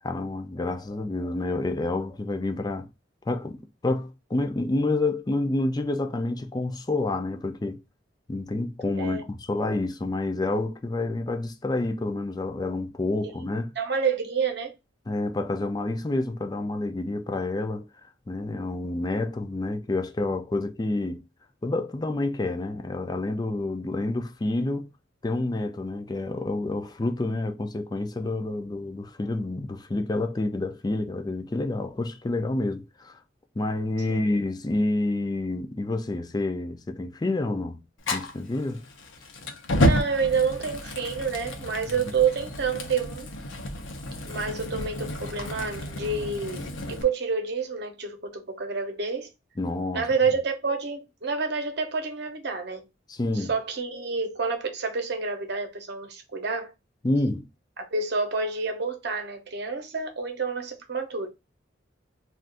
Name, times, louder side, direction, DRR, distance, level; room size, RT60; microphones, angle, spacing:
voice 1, 0.0-2.9 3.3-7.8 8.3-13.7 15.1-17.9 18.3-21.2 21.6-24.9 25.2-33.2 33.6-37.8 38.1-38.8 49.6-50.1 53.1-53.5 57.0-57.5, left 2 dB, 20° left, 0.4 m, -28 dB
voice 2, 13.8-14.7 34.1-34.3 39.8-43.3 44.3-49.3 49.9-52.8 53.4-56.7 57.8-61.3, right 5 dB, 60° right, 0.8 m, -28 dB
Fire, 38.0-47.0, left 1 dB, 85° left, 0.7 m, -30 dB
2.5 x 2.4 x 3.7 m
head